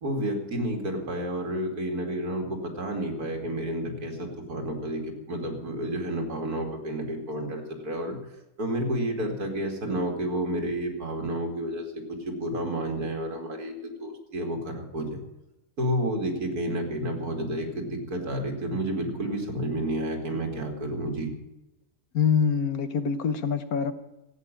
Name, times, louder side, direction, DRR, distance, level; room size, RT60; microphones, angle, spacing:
voice 1, 0.0-8.2 8.6-15.2 15.8-21.3, right 1 dB, 85° right, 2 dB, 3.1 m, -30 dB
voice 2, 22.1-23.9, left 6 dB, 75° left, 10 dB, 1.5 m, -25 dB
14.5 x 8.9 x 8.8 m, 0.96 s
omnidirectional pair, 1.6 m